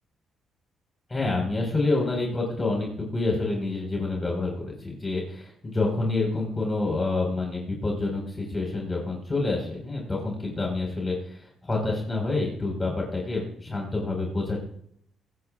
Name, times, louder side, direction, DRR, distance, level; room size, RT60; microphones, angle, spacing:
voice 1, 1.1-14.6, left 2 dB, 25° left, 0 dB, 4.9 m, -28 dB
24.0 x 11.0 x 2.5 m, 0.66 s
cardioid pair, 90°, 0 cm